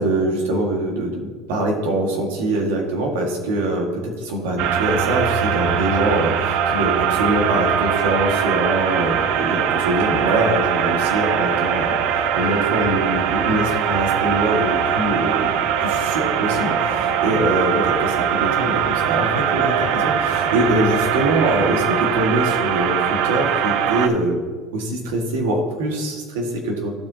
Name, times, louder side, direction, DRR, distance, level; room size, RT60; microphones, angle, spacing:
voice 1, 0.0-15.5 15.8-24.4 24.7-26.9, right 1 dB, 90° right, 1 dB, 1.8 m, -23 dB
sound 1, 4.6-24.1, right 8 dB, 70° right, 0.5 m, -21 dB
14.5 x 5.0 x 2.8 m, 1.5 s
supercardioid pair, 110°, 0 cm